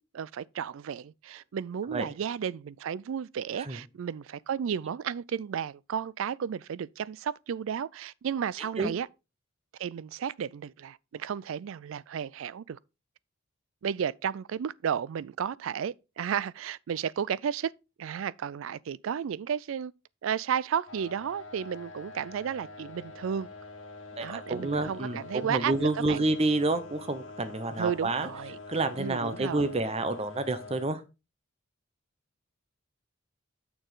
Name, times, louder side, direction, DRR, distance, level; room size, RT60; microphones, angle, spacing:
voice 1, 0.0-9.1 9.8-12.8 13.8-17.7 18.0-19.9 20.2-23.5 24.2-26.2 27.8-28.6 29.0-29.6, right 8 dB, 70° right, 0.3 m, -33 dB
sound 1, 20.9-30.9, left 3 dB, 70° left, 1.4 m, -45 dB
voice 2, 24.2-28.3 28.7-31.0, right 2 dB, 30° right, 0.8 m, -29 dB
7.0 x 6.4 x 3.8 m
head